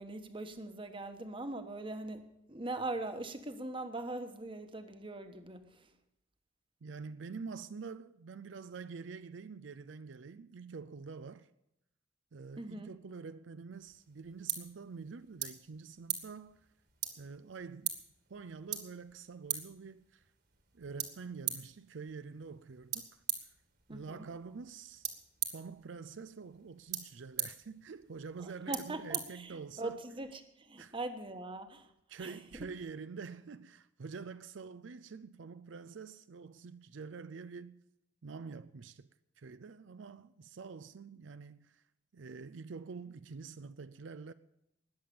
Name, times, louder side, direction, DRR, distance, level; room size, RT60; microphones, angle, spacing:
voice 1, 0.0-5.8 12.6-12.9 23.9-24.3 28.4-31.9 32.2-32.4, right 2 dB, 25° right, 1.2 m, -41 dB
voice 2, 6.8-11.5 12.3-16.6 17.2-17.9 18.3-20.3 20.7-23.2 23.9-25.1 25.5-30.0 30.8-30.9 32.1-37.8 38.2-39.1 39.4-41.8 42.1-44.3, right 5 dB, 75° right, 0.5 m, -46 dB
sound 1, 13.7-30.0, right 10 dB, 55° right, 2.0 m, -43 dB
20.0 x 7.7 x 7.0 m
head